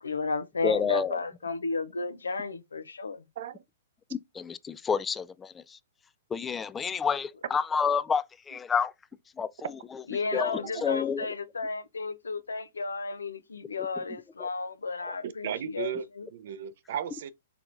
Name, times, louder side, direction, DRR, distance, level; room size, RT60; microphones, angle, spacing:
voice 1, 0.0-3.3 10.1-16.3, left 4 dB, 85° left, 0.5 m, -33 dB
voice 2, 0.6-1.2 4.1-5.8 6.3-8.9 9.4-11.3 14.4-14.5 15.0-15.1, left 6 dB, 15° left, 0.3 m, -30 dB
voice 3, 15.2-16.1 16.3-17.3, right 9 dB, 60° right, 0.6 m, -35 dB
4.6 x 3.4 x 2.6 m
hypercardioid pair, 115°, 0 cm